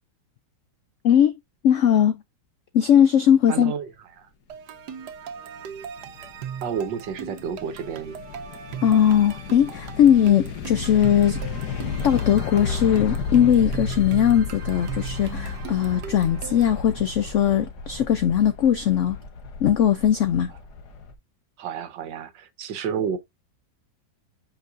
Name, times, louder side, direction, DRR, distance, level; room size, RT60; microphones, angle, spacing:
voice 1, 1.6-2.2 2.7-3.7 8.8-11.4 12.0-19.2 19.6-20.5, left 9 dB, 85° left, 0.6 m, -19 dB
voice 2, 3.5-3.9 4.2-4.3 6.6-8.2 21.6-23.2, right 7 dB, 90° right, 1.7 m, -30 dB
sound 1, 4.5-16.8, right 8 dB, 70° right, 1.3 m, -38 dB
sound 2, 5.6-21.1, left 4 dB, 65° left, 1.7 m, -33 dB
8.0 x 5.4 x 2.5 m
omnidirectional pair, 1.9 m